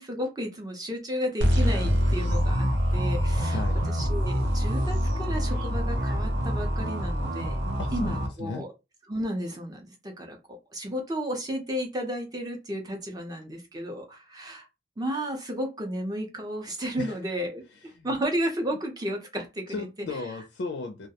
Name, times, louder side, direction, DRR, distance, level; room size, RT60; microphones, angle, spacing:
voice 1, 0.0-3.6 3.9-7.6 7.9-8.7 9.1-14.7 15.0-17.6 18.0-19.9, equal, 20° right, 0.5 m, -33 dB
sound 1, 1.4-8.3, equal, 75° right, 0.7 m, -25 dB
voice 2, 3.4-3.9 7.8-8.7 17.0-17.2 17.9-18.1 19.7-21.1, left 3 dB, 65° left, 0.4 m, -35 dB
2.3 x 2.1 x 2.7 m
head